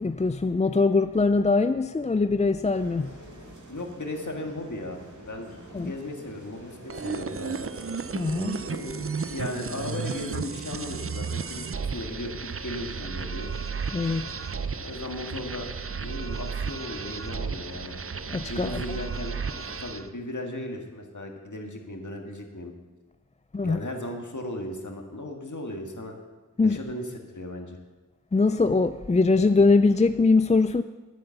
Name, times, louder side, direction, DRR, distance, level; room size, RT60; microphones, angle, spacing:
voice 1, 0.0-3.2 5.7-5.9 8.1-8.6 13.9-14.3 18.3-18.8 23.5-23.8 26.6-26.8 28.3-30.8, left 3 dB, 25° left, 0.3 m, -22 dB
sound 1, 2.7-19.8, right 1 dB, 70° right, 2.1 m, -47 dB
voice 2, 3.7-5.0 5.3-7.7 8.7-13.5 14.8-15.7 16.0-17.9 18.5-19.4 19.8-22.7 23.6-26.2 26.6-27.8, left 1 dB, 70° left, 1.7 m, -36 dB
sound 2, 6.9-20.1, right 5 dB, 45° right, 0.5 m, -34 dB
10.5 x 9.6 x 6.9 m
wide cardioid pair, 50°, 31 cm